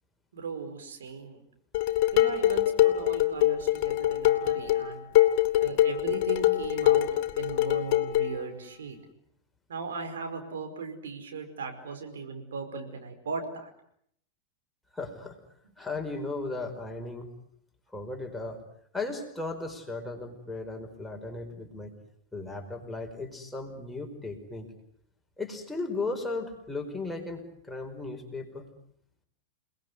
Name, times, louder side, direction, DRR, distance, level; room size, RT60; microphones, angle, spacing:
voice 1, 0.3-1.4 2.1-5.1 5.6-7.1 7.4-9.0 9.7-13.7, right 4 dB, 65° right, 5 dB, 5.0 m, -37 dB
Dishes pots and pans, 1.7-8.4, left 14 dB, 45° left, 2.6 m, -24 dB
voice 2, 14.9-15.4 15.8-17.3 17.9-18.6 18.9-21.9 22.3-24.7 25.4-28.7, left 3 dB, 5° left, 2 dB, 5.0 m, -36 dB
29.5 x 20.0 x 9.7 m, 0.70 s
figure-of-eight pair, 90°, 0 cm